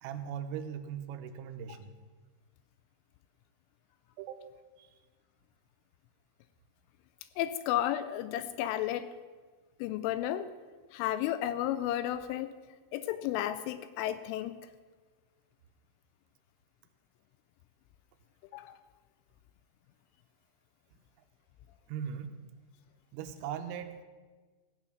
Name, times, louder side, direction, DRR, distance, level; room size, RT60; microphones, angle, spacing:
voice 1, 0.0-1.9 4.2-4.4 4.8-4.9 21.9-22.3 23.1-24.0, right 8 dB, 85° right, 8 dB, 3.4 m, -39 dB
voice 2, 7.4-9.1 9.8-10.5 10.9-12.5 12.9-14.6 18.5-18.7, left 12 dB, 85° left, 12 dB, 2.9 m, -32 dB
15.5 x 8.3 x 6.0 m, 1.4 s
omnidirectional pair, 5.9 m